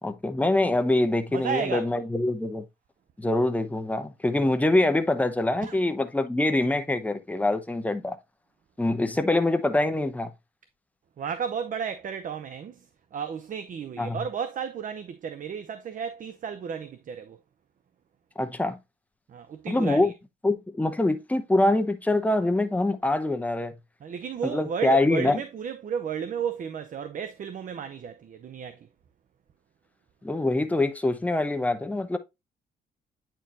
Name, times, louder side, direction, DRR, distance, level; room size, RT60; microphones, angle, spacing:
voice 1, 0.0-2.6 3.2-8.2 8.8-10.3 14.0-14.2 18.4-18.8 19.7-20.1 20.4-23.7 24.4-25.4 30.2-32.2, left 2 dB, 10° left, 0.8 m, -24 dB
voice 2, 1.3-1.9 5.6-5.8 11.2-17.4 19.3-20.1 24.0-28.9, right 7 dB, 50° right, 0.6 m, -33 dB
8.9 x 4.5 x 2.6 m
cardioid pair, 95°, 18 cm